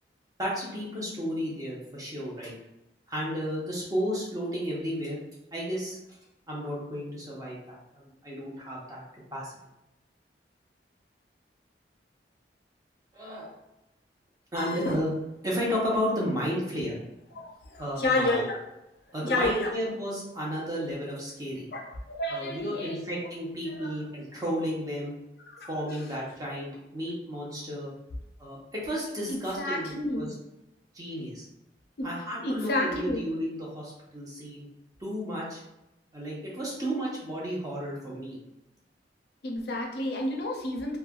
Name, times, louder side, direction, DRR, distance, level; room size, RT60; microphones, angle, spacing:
voice 1, 0.4-2.5 3.1-5.2 5.5-6.0 6.5-9.0 9.3-9.5 13.1-13.5 14.5-15.1 15.4-17.0 17.8-18.4 19.1-21.7 22.3-25.1 25.7-27.9 28.4-30.3 30.9-31.4 32.0-34.7 35.0-35.6 36.1-38.4, equal, 20° right, -4 dB, 0.7 m, -33 dB
voice 2, 14.6-15.0 17.7-18.6 19.2-19.7 21.7-23.1 23.7-23.9 25.5-25.7 29.3-30.2 32.0-32.1 32.4-33.2 39.4-41.0, left 2 dB, 65° left, 1 dB, 0.4 m, -30 dB
3.1 x 2.1 x 2.3 m, 0.91 s
head